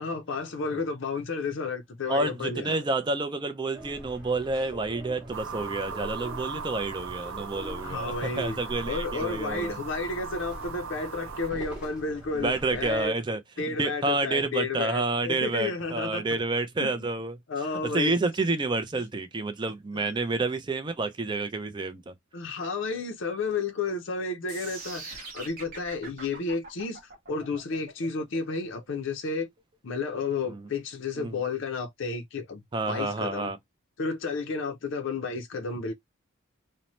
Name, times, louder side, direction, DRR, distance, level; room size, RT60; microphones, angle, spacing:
voice 1, 0.0-2.8 7.8-8.6 8.9-16.2 16.8-17.1 17.5-18.2 20.0-20.1 22.3-29.5 29.8-33.5 34.0-35.9, left 4 dB, 60° left, 0.5 m, -32 dB
voice 2, 2.1-9.8 12.3-13.4 13.7-17.4 17.8-22.1 30.5-30.6 31.2-31.4 32.7-33.6, right 3 dB, 20° right, 0.4 m, -29 dB
sound 1, 3.7-13.1, equal, 5° right, 0.8 m, -43 dB
sound 2, 5.3-11.5, right 6 dB, 75° right, 0.5 m, -39 dB
sound 3, 24.5-30.5, right 3 dB, 40° right, 0.8 m, -43 dB
2.7 x 2.1 x 2.9 m
head